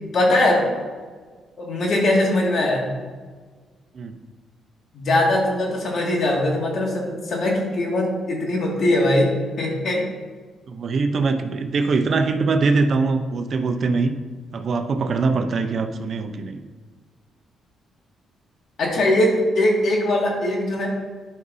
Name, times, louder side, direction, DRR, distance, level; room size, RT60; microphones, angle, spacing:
voice 1, 0.1-0.6 1.6-2.9 4.9-9.3 9.6-10.0 18.8-20.9, left 1 dB, 55° left, -1 dB, 2.1 m, -21 dB
voice 2, 10.7-14.1 14.5-16.6, right 4 dB, 50° right, 7 dB, 0.7 m, -22 dB
11.5 x 5.4 x 2.7 m, 1.5 s
cardioid pair, 90°, 0 cm